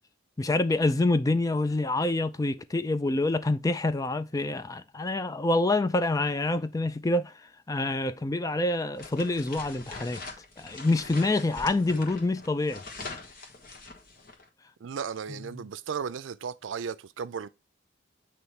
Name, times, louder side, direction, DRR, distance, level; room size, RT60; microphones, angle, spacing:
voice 1, 0.4-7.3 7.7-10.2 10.6-12.8, left 2 dB, 20° left, 0.4 m, -26 dB
sound 1, 8.9-14.4, left 3 dB, 50° left, 1.4 m, -43 dB
voice 2, 14.8-17.5, right 6 dB, 85° right, 0.4 m, -35 dB
8.1 x 3.0 x 4.4 m
head